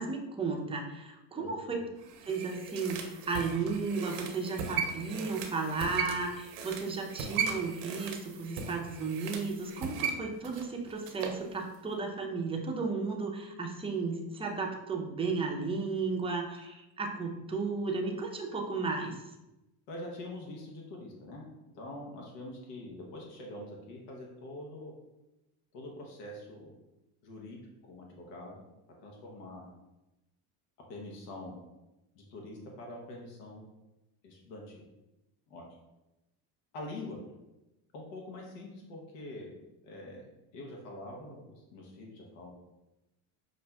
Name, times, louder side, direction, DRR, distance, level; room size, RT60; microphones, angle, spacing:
voice 1, 0.0-1.8 2.3-19.2, right 4 dB, 15° right, 1 dB, 0.4 m, -34 dB
voice 2, 1.3-1.8 19.9-21.5 21.7-24.9 25.7-26.7 27.2-28.6 29.0-29.7 30.9-31.6 32.1-33.7 34.2-34.9 35.5-35.6 36.7-37.2 37.9-39.6 39.8-42.5, left 1 dB, 85° left, -1 dB, 0.9 m, -44 dB
sound 1, 2.0-11.4 11.7-11.8, right 6 dB, 85° right, 0.7 m, -38 dB
5.4 x 2.5 x 2.2 m, 0.98 s
supercardioid pair, 105°, 47 cm